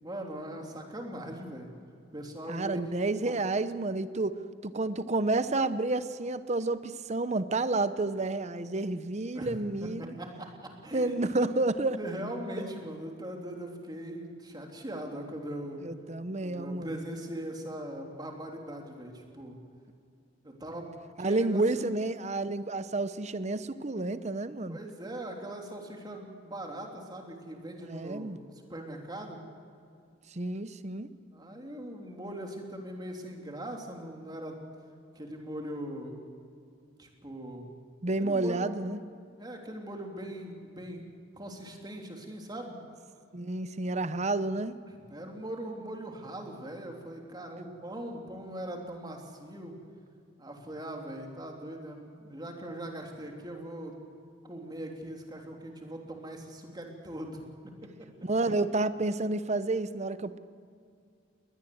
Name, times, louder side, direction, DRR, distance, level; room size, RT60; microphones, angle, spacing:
voice 1, 0.0-1.7 2.1-3.0 3.3-3.4 9.3-9.5 9.8-11.5 12.0-15.8 16.4-19.5 20.4-20.9 21.2-21.9 24.7-28.3 28.7-29.4 31.3-34.6 35.1-36.2 37.0-37.7 38.2-38.7 39.4-42.7 45.1-49.7 50.4-54.0 54.4-57.7, right 1 dB, 20° right, 2 dB, 3.3 m, -40 dB
voice 2, 2.5-10.1 10.9-12.0 12.6-12.7 15.8-17.0 21.2-24.8 27.8-28.4 30.3-31.1 38.0-39.0 43.3-44.8 58.2-60.4, right 2 dB, 35° right, 13 dB, 0.8 m, -30 dB
21.5 x 19.5 x 7.9 m, 2.3 s
head